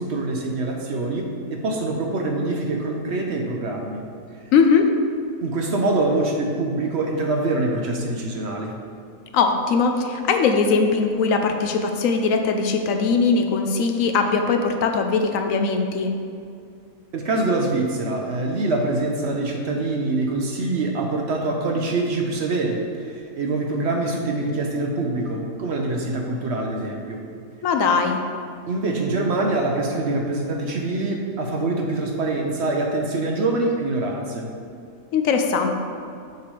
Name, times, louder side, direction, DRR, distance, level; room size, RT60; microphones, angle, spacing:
voice 1, 0.0-4.1 5.4-8.7 17.1-27.2 28.7-34.5, right 2 dB, 60° right, 1 dB, 0.8 m, -24 dB
voice 2, 4.5-4.9 9.3-16.1 27.6-28.2 35.1-35.7, left 5 dB, 75° left, 5 dB, 1.0 m, -20 dB
6.7 x 6.7 x 3.2 m, 2.5 s
omnidirectional pair, 1.5 m